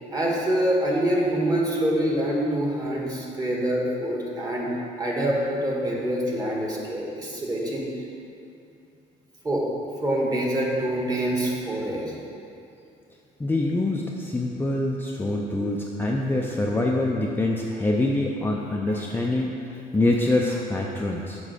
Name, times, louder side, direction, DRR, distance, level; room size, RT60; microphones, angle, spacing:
voice 1, 0.1-4.7 5.0-7.8 9.4-9.6 10.0-12.1, right 1 dB, 20° right, -3 dB, 1.7 m, -25 dB
voice 2, 13.4-21.4, left 2 dB, 10° left, -2 dB, 0.5 m, -25 dB
7.4 x 4.7 x 6.6 m, 2.6 s
cardioid pair, 110°, 17 cm